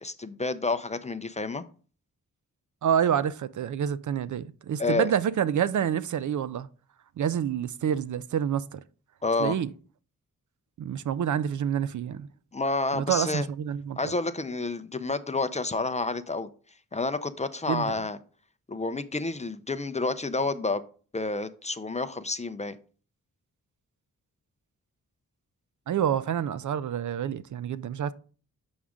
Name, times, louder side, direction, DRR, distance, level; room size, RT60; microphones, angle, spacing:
voice 1, 0.0-1.6 4.8-5.1 9.2-9.6 12.5-13.5 14.0-16.5 16.9-18.2 18.7-20.8 21.1-22.8, left 3 dB, 20° left, 0.5 m, -29 dB
voice 2, 2.8-6.7 7.2-8.8 9.4-9.7 10.8-12.3 12.9-14.1 17.7-17.9 25.9-28.1, right 9 dB, 60° right, 0.5 m, -28 dB
7.1 x 6.2 x 3.6 m
wide cardioid pair, 105°, 34 cm